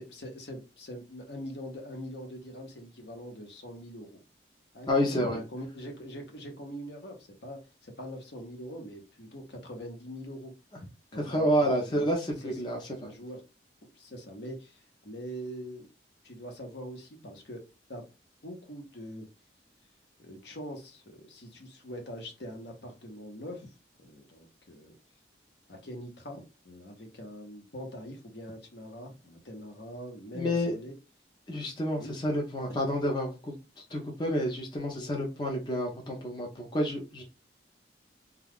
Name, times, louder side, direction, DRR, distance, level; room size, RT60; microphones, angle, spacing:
voice 1, 0.0-4.2 4.7-10.5 11.1-12.1 12.4-13.4 13.8-15.9 16.2-17.6 17.9-18.0 18.4-19.3 20.2-23.7 24.0-24.9 25.7-30.9 32.0-32.1 34.9-35.1, equal, 70° left, 0.9 m, -43 dB
voice 2, 4.9-5.4 11.2-13.1 30.3-30.7 31.5-33.6 33.9-37.2, equal, 25° left, 0.5 m, -29 dB
2.3 x 2.3 x 3.4 m
head